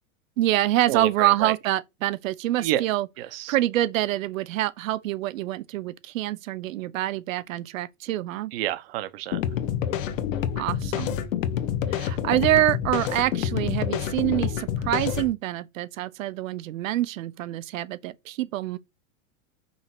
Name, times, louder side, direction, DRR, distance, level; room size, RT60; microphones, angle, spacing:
voice 1, 0.4-3.1 3.5-8.5 10.6-11.2 11.9-18.8, right 14 dB, 70° right, 0.9 m, -26 dB
voice 2, 0.9-1.5 2.6-2.8 3.2-3.5 8.5-9.4, right 13 dB, 45° right, 0.9 m, -29 dB
sound 1, 9.3-15.3, left 9 dB, 70° left, 1.2 m, -28 dB
5.6 x 4.4 x 6.0 m
supercardioid pair, 175°, 41 cm